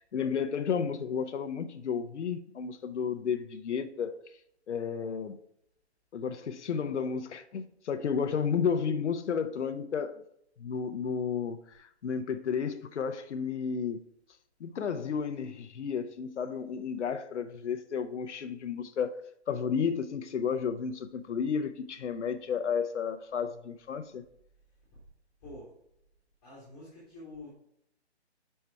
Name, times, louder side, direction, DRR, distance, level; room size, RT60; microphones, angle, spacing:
voice 1, 0.0-4.2 4.7-5.4 6.1-10.2 10.6-14.0 14.6-19.2 19.5-24.2, left 6 dB, 90° left, 0.7 m, -32 dB
voice 2, 25.4-25.7 26.4-27.5, left 2 dB, 15° left, 2.0 m, -47 dB
5.6 x 4.7 x 4.3 m
hypercardioid pair, 165°, 34 cm